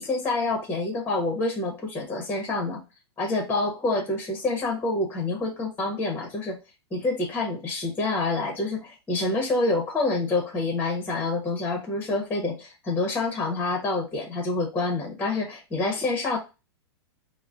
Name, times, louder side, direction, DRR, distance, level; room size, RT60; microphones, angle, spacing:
voice 1, 0.0-2.8 3.2-6.6 6.9-16.4, left 2 dB, 10° left, 2 dB, 0.9 m, -27 dB
3.9 x 2.1 x 2.4 m, 0.27 s
hypercardioid pair, 135°, 14 cm